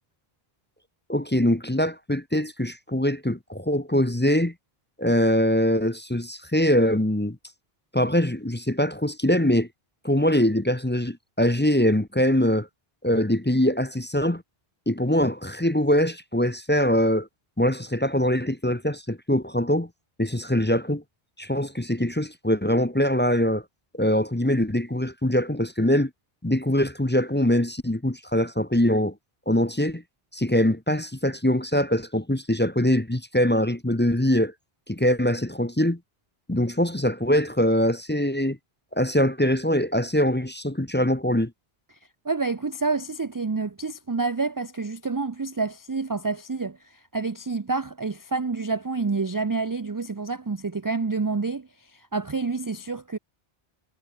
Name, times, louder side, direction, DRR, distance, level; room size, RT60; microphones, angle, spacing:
voice 1, 1.1-4.5 5.0-7.4 7.9-9.7 10.0-12.7 13.0-14.4 14.9-17.3 17.6-19.9 20.2-21.0 21.4-23.6 23.9-26.1 26.4-29.1 29.5-30.0 30.3-34.5 34.9-36.0 36.5-38.6 38.9-41.5, left 1 dB, 10° left, 0.9 m, -23 dB
voice 2, 42.2-53.2, right 4 dB, 25° right, 0.5 m, -28 dB
omnidirectional pair, 1.0 m